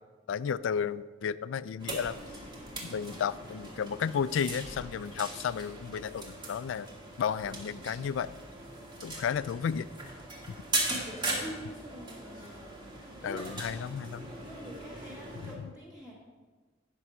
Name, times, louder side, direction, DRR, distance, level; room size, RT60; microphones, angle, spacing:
voice 1, 0.3-2.2 2.8-6.9 7.2-8.3 9.0-9.9 10.5-10.6 13.2-14.3, left 7 dB, 85° left, 17 dB, 0.3 m, -33 dB
sound 1, 1.8-15.6, right 2 dB, 25° right, 1.7 m, -39 dB
voice 2, 2.8-4.0 11.0-13.7 14.4-16.1, equal, 5° right, -8 dB, 1.8 m, -47 dB
9.8 x 6.0 x 5.5 m, 1.4 s
head